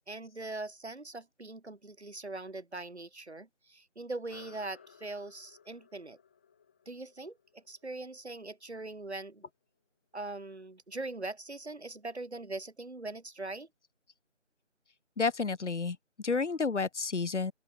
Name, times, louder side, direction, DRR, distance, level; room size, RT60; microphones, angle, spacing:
voice 1, 0.1-6.2 6.8-9.4 10.1-13.7, right 2 dB, 60° right, 3.4 m, -41 dB
sound 1, 4.3-9.1, left 7 dB, 10° left, 4.1 m, -59 dB
voice 2, 15.2-17.5, left 4 dB, 65° left, 0.8 m, -31 dB
open air
figure-of-eight pair, 175°, 38 cm